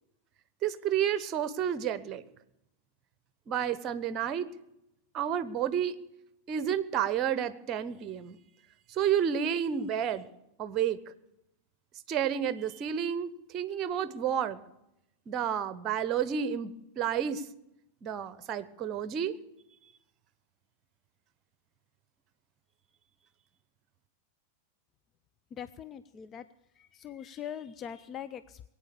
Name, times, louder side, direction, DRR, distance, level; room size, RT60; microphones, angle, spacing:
voice 1, 0.6-2.2 3.5-4.5 5.1-5.9 6.5-8.4 8.9-10.3 10.6-11.0 12.1-14.6 15.3-17.4 18.0-19.3, right 9 dB, 35° right, 16 dB, 1.0 m, -30 dB
voice 2, 25.5-26.4 26.8-28.7, left 9 dB, 30° left, 12 dB, 0.5 m, -42 dB
21.5 x 9.0 x 6.9 m, 0.85 s
figure-of-eight pair, 90°, 0 cm